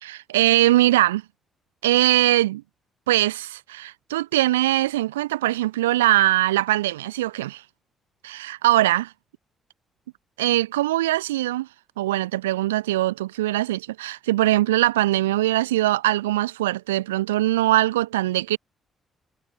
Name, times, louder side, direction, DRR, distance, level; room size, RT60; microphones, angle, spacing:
voice 1, 0.0-1.2 1.8-2.6 3.1-7.6 8.2-9.1 10.4-11.7 12.0-18.6, right 15 dB, 75° right, 4.3 m, -21 dB
figure-of-eight pair, 40°, 0 cm